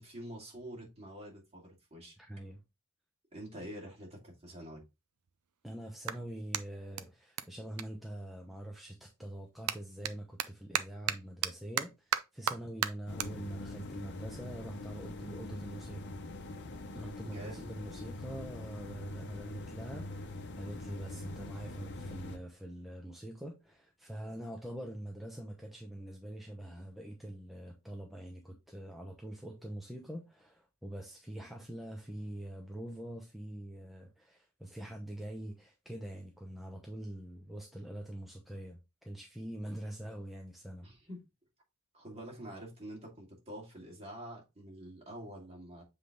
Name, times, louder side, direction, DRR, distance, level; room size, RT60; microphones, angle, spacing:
voice 1, 0.0-2.1 3.3-4.8 17.2-17.7 40.8-41.2 41.9-45.8, equal, 30° right, 2.4 m, -47 dB
voice 2, 2.2-2.6 5.6-16.2 16.9-40.9, right 1 dB, ahead, 0.8 m, -44 dB
Clapping, 4.7-8.8 9.1-15.7, right 9 dB, 85° right, 0.5 m, -39 dB
sound 1, 13.1-22.4, left 2 dB, 55° left, 0.8 m, -43 dB
7.5 x 3.4 x 3.7 m
head